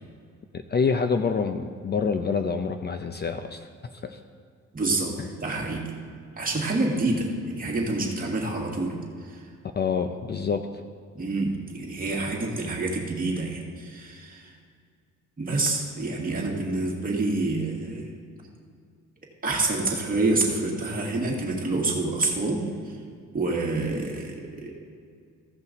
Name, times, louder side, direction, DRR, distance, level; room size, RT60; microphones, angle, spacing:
voice 1, 0.5-3.7 4.0-4.2 5.2-5.3 9.8-10.7, left 5 dB, 35° left, 7 dB, 0.5 m, -26 dB
voice 2, 4.7-5.1 5.4-5.9 6.4-9.4 11.1-14.5 15.4-18.1 19.4-23.0 23.3-24.7, right 2 dB, 30° right, -1 dB, 2.1 m, -27 dB
15.5 x 5.6 x 4.1 m, 2.2 s
cardioid pair, 90°, 30 cm